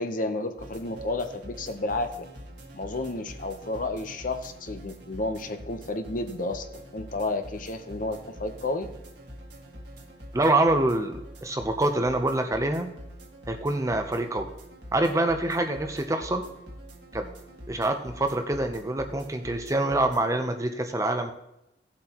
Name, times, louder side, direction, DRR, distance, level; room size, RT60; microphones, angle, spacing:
voice 1, 0.0-2.1 2.7-8.9, left 2 dB, 45° left, 7 dB, 0.8 m, -31 dB
sound 1, 0.6-20.2, right 1 dB, 65° right, 1.8 m, -45 dB
voice 2, 10.3-12.9 13.5-14.5 14.9-16.4 17.1-17.3 17.7-21.3, right 2 dB, 15° right, 6 dB, 0.6 m, -26 dB
17.5 x 7.7 x 3.0 m, 0.89 s
head